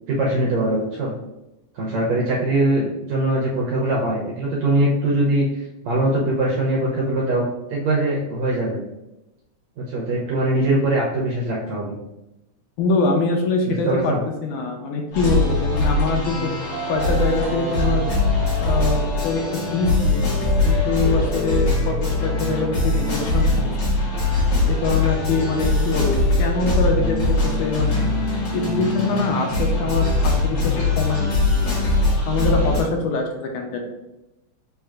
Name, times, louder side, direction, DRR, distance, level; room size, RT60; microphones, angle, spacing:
voice 1, 0.1-1.1 1.7-5.5 5.8-8.8 9.8-12.0 13.7-14.2, right 1 dB, 75° right, -4 dB, 1.6 m, -22 dB
voice 2, 12.8-14.2 14.4-16.5 16.9-18.1 18.6-20.3 20.6-23.5 24.6-28.0 28.5-31.6 32.3-33.9, left 3 dB, 80° left, 2 dB, 2.0 m, -24 dB
sound 1, 15.1-32.8, left 2 dB, 50° left, 1.7 m, -21 dB
7.6 x 2.8 x 2.4 m, 0.93 s
omnidirectional pair, 3.8 m